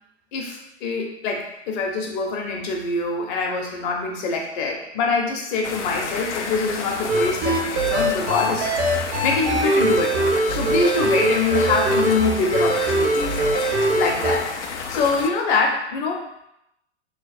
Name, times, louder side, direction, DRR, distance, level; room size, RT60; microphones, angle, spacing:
voice 1, 0.3-8.9 9.2-14.5 14.9-16.2, left 4 dB, 45° left, 1 dB, 0.8 m, -24 dB
sound 1, 5.6-15.3, left 4 dB, 85° left, 0.5 m, -31 dB
sound 2, 7.1-14.4, right 2 dB, 60° right, 1.1 m, -22 dB
3.1 x 2.0 x 4.1 m, 0.81 s
hypercardioid pair, 105°, 34 cm